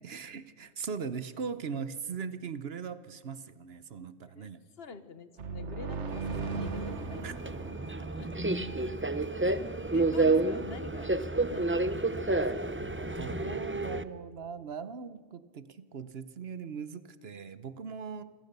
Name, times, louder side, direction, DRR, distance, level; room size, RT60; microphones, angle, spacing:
voice 1, 0.0-4.6 7.2-7.3 12.8-18.2, right 6 dB, 60° right, 14 dB, 1.1 m, -40 dB
voice 2, 4.8-7.2 7.8-8.3 9.9-11.1 11.5-12.7 13.1-13.6, left 5 dB, 60° left, 12 dB, 1.3 m, -47 dB
sound 1, 5.4-9.1, right 4 dB, 75° right, 1.6 m, -38 dB
Subway metro underground, 6.1-14.0, right 2 dB, 15° right, 0.4 m, -30 dB
27.0 x 16.5 x 6.8 m, 1.4 s
omnidirectional pair, 1.2 m